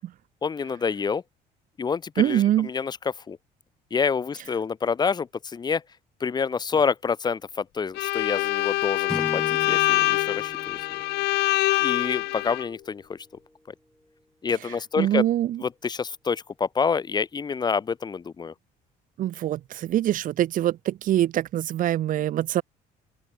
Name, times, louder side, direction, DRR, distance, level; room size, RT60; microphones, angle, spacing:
voice 1, 0.4-1.2 1.8-3.0 3.3-3.4 3.9-5.8 6.2-10.8 11.8-13.2 13.7-13.8 14.4-15.2 15.6-18.5, left 5 dB, 25° left, 0.6 m, -27 dB
voice 2, 2.2-2.7 15.0-15.6 19.2-22.6, right 12 dB, 55° right, 0.6 m, -24 dB
Bowed string instrument, 7.9-12.7, left 21 dB, 80° left, 0.4 m, -24 dB
sound 1, 9.1-13.6, left 1 dB, 5° left, 3.2 m, -40 dB
open air
cardioid pair, 110°, 17 cm